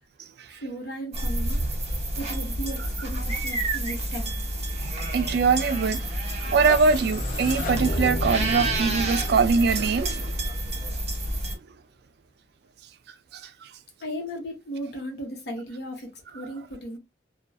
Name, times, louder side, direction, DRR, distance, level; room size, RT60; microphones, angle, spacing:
voice 1, 0.6-1.6 2.2-4.3 14.0-16.1 16.3-17.0, equal, 60° left, 1.0 m, -35 dB
sound 1, 1.1-11.5, right 1 dB, 35° right, 0.9 m, -29 dB
voice 2, 5.1-6.0 6.5-10.3, right 5 dB, 60° right, 0.3 m, -22 dB
sound 2, 6.3-11.2, left 2 dB, 45° left, 0.5 m, -34 dB
2.6 x 2.3 x 2.3 m
head